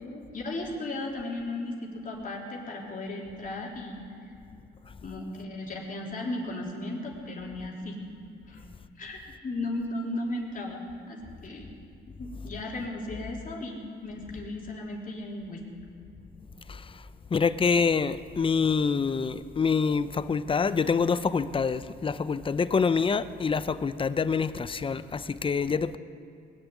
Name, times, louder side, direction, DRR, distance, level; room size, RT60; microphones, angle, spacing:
voice 1, 0.0-4.0 5.0-8.0 8.5-8.6 9.0-9.2 9.4-11.8 12.2-15.6, left 2 dB, 45° left, 3.4 m, -36 dB
voice 2, 16.7-17.1 17.3-26.0, left 5 dB, 25° left, 0.6 m, -26 dB
20.5 x 7.0 x 9.4 m
cardioid pair, 90°, 20 cm